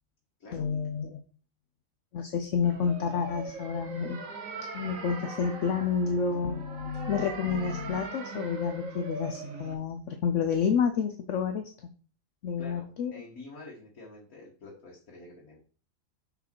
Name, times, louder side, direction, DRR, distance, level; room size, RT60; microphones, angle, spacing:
voice 1, 0.5-1.2 2.1-4.2 4.7-11.7 12.4-13.1, left 6 dB, 65° left, 7 dB, 1.0 m, -29 dB
sound 1, 2.6-9.7, right 3 dB, 70° right, 1.7 m, -40 dB
voice 2, 12.6-15.6, left 2 dB, 80° left, -3 dB, 2.1 m, -48 dB
6.3 x 5.1 x 4.6 m, 0.40 s
omnidirectional pair, 1.5 m